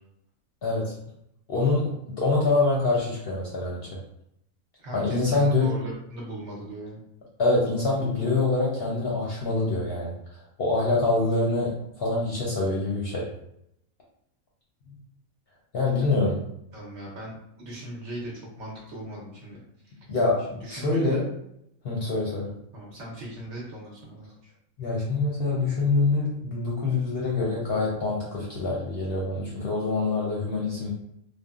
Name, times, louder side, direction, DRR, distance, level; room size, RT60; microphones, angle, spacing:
voice 1, 0.6-0.9 1.5-3.9 4.9-5.7 7.4-10.1 10.6-13.3 14.9-15.0 15.7-16.4 20.1-21.3 21.8-22.5 24.8-30.9, left 3 dB, 55° left, -4 dB, 0.7 m, -25 dB
voice 2, 4.8-7.0 15.9-16.1 16.7-18.3 18.6-19.6 19.8-19.9 20.6-21.2 22.7-24.5, right 1 dB, 60° right, -3 dB, 1.0 m, -39 dB
3.3 x 2.1 x 2.3 m, 0.77 s
omnidirectional pair, 1.5 m